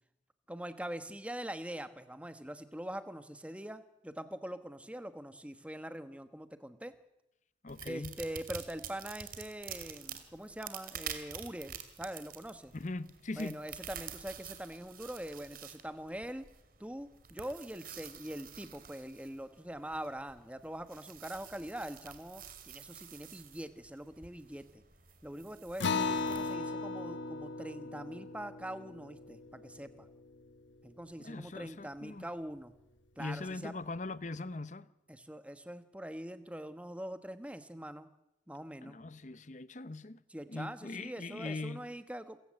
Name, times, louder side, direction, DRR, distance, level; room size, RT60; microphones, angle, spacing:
voice 1, 0.5-6.9 7.8-12.7 13.3-16.5 16.8-24.8 25.2-30.1 30.8-32.7 33.2-33.7 35.1-38.1 38.5-39.0 40.3-42.4, right 1 dB, 5° right, 1.2 m, -43 dB
voice 2, 7.6-8.2 12.7-13.6 31.2-32.2 33.2-34.9 38.8-40.2 40.5-41.9, left 2 dB, 40° left, 0.8 m, -41 dB
sound 1, 7.7-26.5, right 8 dB, 50° right, 2.4 m, -49 dB
Acoustic guitar, 25.8-30.7, left 4 dB, 85° left, 1.3 m, -37 dB
28.0 x 16.0 x 7.6 m
head